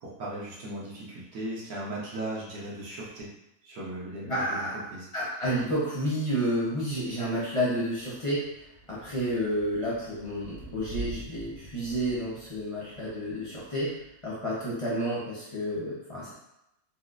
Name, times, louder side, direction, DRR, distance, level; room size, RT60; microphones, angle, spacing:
voice 1, 0.0-3.3 3.6-5.1, right 1 dB, 80° right, -6 dB, 1.4 m, -37 dB
voice 2, 4.3-4.8 5.1-8.5 8.9-13.9 14.2-16.3, equal, 30° left, -8 dB, 0.6 m, -30 dB
Thunder / Rain, 6.9-14.8, equal, 60° right, 0.8 m, -46 dB
4.2 x 2.0 x 2.5 m, 0.84 s
omnidirectional pair, 1.5 m